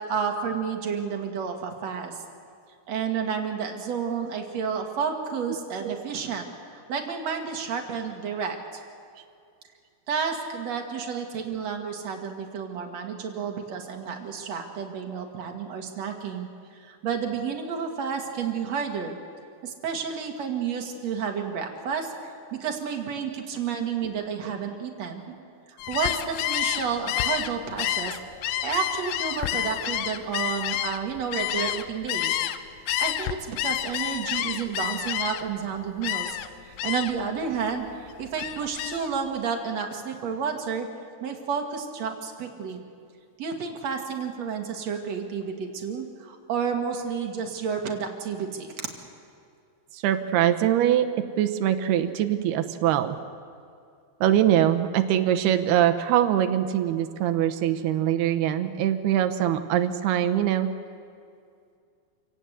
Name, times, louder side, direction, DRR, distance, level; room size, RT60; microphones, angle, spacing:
voice 1, 0.1-2.2 2.9-8.6 10.1-16.5 16.8-19.2 19.6-22.1 22.5-25.2 25.9-32.4 33.0-36.4 36.7-40.9 41.2-42.8 43.4-48.9, right 6 dB, 50° right, 3 dB, 2.7 m, -31 dB
Gull seagull, 25.8-32.6 32.9-35.6 36.0-36.5 36.8-37.3 37.6-39.1, left 12 dB, 80° left, 1.9 m, -29 dB
voice 2, 49.9-51.1 51.4-53.2 54.2-60.7, right 11 dB, 85° right, 9 dB, 3.0 m, -23 dB
27.5 x 17.5 x 8.1 m, 2.4 s
omnidirectional pair, 4.5 m